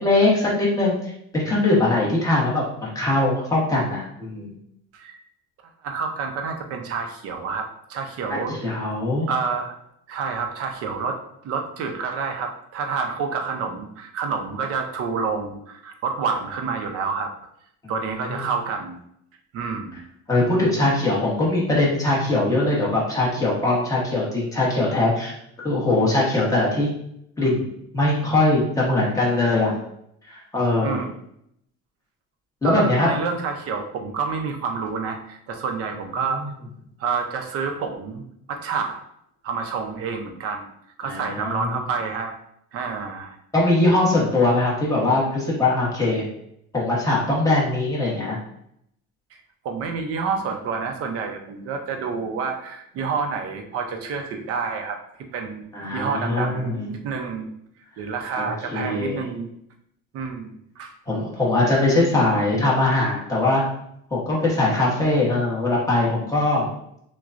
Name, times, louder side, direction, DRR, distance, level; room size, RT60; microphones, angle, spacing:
voice 1, 0.0-4.5 8.3-9.3 17.8-17.9 18.3-18.5 20.3-25.4 25.6-26.9 27.4-29.7 30.3-31.0 32.6-33.1 36.3-36.5 41.0-41.8 43.5-46.2 46.7-48.4 55.7-56.9 58.4-59.2 61.1-63.6 64.1-66.7, left 2 dB, 10° left, -5 dB, 1.1 m, -21 dB
voice 2, 5.8-8.9 9.3-9.7 10.1-17.3 17.9-19.0 19.5-20.0 30.8-31.1 32.6-36.4 37.0-38.2 38.5-39.0 39.4-40.7 41.0-42.3 42.7-43.4 49.6-55.0 55.3-55.6 55.9-57.5 58.0-59.5 60.1-60.9, right 5 dB, 55° right, 4 dB, 0.7 m, -28 dB
6.1 x 2.2 x 2.5 m, 0.74 s
cardioid pair, 155°, 29 cm